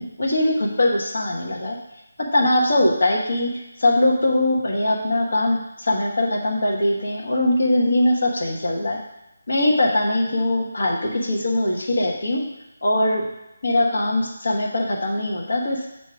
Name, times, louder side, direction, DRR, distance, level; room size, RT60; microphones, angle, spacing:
voice 1, 0.0-1.8 2.3-3.5 3.8-9.0 9.5-12.4 12.8-13.2 13.6-15.9, left 1 dB, 60° left, -2 dB, 1.3 m, -21 dB
7.2 x 2.9 x 4.9 m, 0.95 s
figure-of-eight pair, 175°, 0 cm